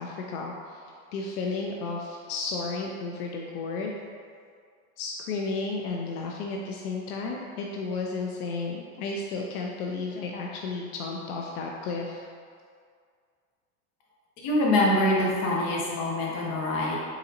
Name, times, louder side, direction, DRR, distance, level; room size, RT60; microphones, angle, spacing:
voice 1, 0.0-4.0 5.0-12.2, left 3 dB, 90° left, 0 dB, 0.6 m, -33 dB
voice 2, 14.4-17.0, left 1 dB, 45° left, -3 dB, 1.1 m, -24 dB
4.0 x 4.0 x 2.6 m, 2.1 s
supercardioid pair, 130°, 43 cm